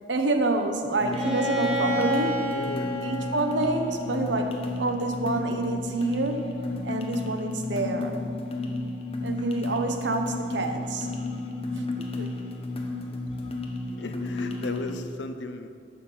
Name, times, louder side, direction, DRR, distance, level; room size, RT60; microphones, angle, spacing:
voice 1, 0.1-2.6 3.0-6.6 6.8-8.2 9.2-11.1 12.0-12.3, right 2 dB, 85° right, 6 dB, 1.0 m, -27 dB
sound 1, 1.0-15.0, left 2 dB, 35° left, 1.1 m, -32 dB
Bowed string instrument, 1.1-4.9, equal, 30° right, 1.5 m, -31 dB
voice 2, 2.5-2.9 14.0-15.7, left 2 dB, 80° left, 8 dB, 0.7 m, -36 dB
12.0 x 6.6 x 5.7 m, 2.4 s
head